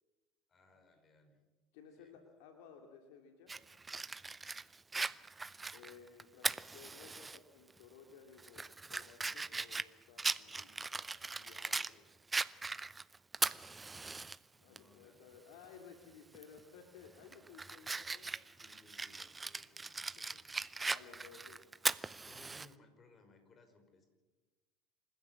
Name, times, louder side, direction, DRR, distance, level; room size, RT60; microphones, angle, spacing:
voice 1, 0.5-1.4 2.0-2.2 13.4-14.1 14.5-16.3 18.5-19.9 20.8-20.9 22.2-24.1, left 2 dB, 30° left, 7 dB, 5.2 m, -65 dB
voice 2, 1.7-3.5 5.7-11.1 11.4-12.1 14.6-18.3 20.0-20.5 20.9-21.6, left 6 dB, 65° left, 4 dB, 2.4 m, -57 dB
Fire, 3.5-7.4 7.8-7.9 8.4-11.9 12.3-14.4 14.8-14.9 16.3-16.6 17.1-22.7, right 3 dB, 15° right, 0.6 m, -39 dB
27.5 x 15.0 x 7.4 m, 1.2 s
hypercardioid pair, 75°, 0 cm